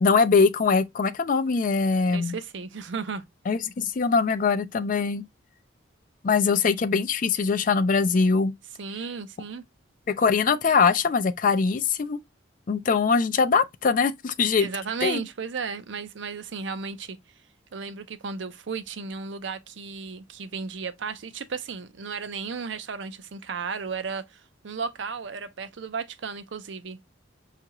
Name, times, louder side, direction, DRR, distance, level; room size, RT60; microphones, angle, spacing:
voice 1, 0.0-2.3 3.5-5.2 6.2-8.5 10.1-12.2 12.7-14.7 15.0-15.2, left 5 dB, 40° left, 0.3 m, -22 dB
voice 2, 2.1-3.3 8.8-9.6 14.6-17.2 17.7-27.2, right 5 dB, 65° right, 0.5 m, -34 dB
5.5 x 2.4 x 2.9 m
head